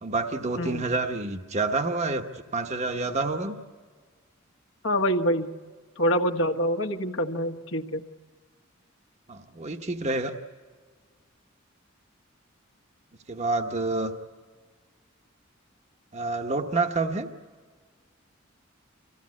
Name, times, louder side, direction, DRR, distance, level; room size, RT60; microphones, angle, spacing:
voice 1, 0.0-3.6 9.3-10.3 13.3-14.1 16.1-17.3, right 3 dB, 35° right, 5 dB, 1.0 m, -28 dB
voice 2, 4.8-5.5 6.0-8.0, equal, 65° left, 3 dB, 1.5 m, -26 dB
25.0 x 16.0 x 9.6 m, 1.5 s
head